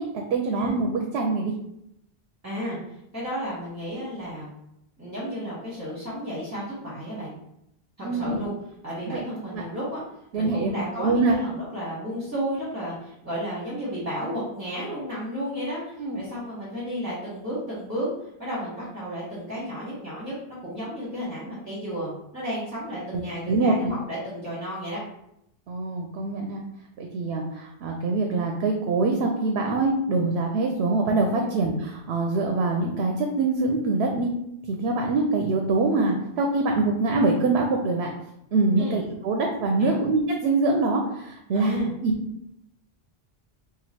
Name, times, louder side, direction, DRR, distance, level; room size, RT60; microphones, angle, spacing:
voice 1, 0.0-1.5 8.0-8.4 9.1-9.2 9.5-9.6 10.3-10.7 11.0-11.3 16.0-16.3 23.1-23.2 23.5-23.7 25.7-26.6 27.0-34.3 34.7-38.1 38.5-42.1, right 3 dB, 90° right, 2 dB, 0.8 m, -24 dB
voice 2, 2.4-2.8 3.1-4.5 5.0-7.4 8.0-8.5 8.8-10.0 10.3-18.1 18.4-25.0 31.3-31.5 38.8-39.0 39.8-40.0 41.5-41.9, equal, 15° right, -9 dB, 1.1 m, -32 dB
3.0 x 2.3 x 4.2 m, 0.79 s
omnidirectional pair, 1.1 m